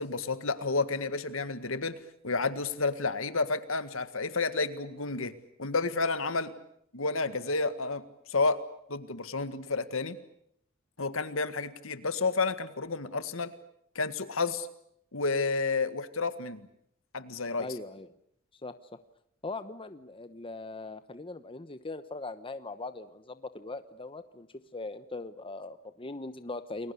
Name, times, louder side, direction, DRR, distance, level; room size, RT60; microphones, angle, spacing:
voice 1, 0.0-2.0 2.2-5.3 5.6-6.5 6.9-8.0 8.3-8.6 8.9-10.2 11.0-13.5 13.9-14.7 15.1-16.7 17.1-17.7, left 3 dB, 70° left, 12 dB, 1.8 m, -30 dB
voice 2, 17.6-18.1 18.6-18.7 19.4-24.5 24.7-26.9, left 3 dB, 25° left, 11 dB, 1.0 m, -40 dB
29.5 x 21.5 x 8.4 m, 0.74 s
head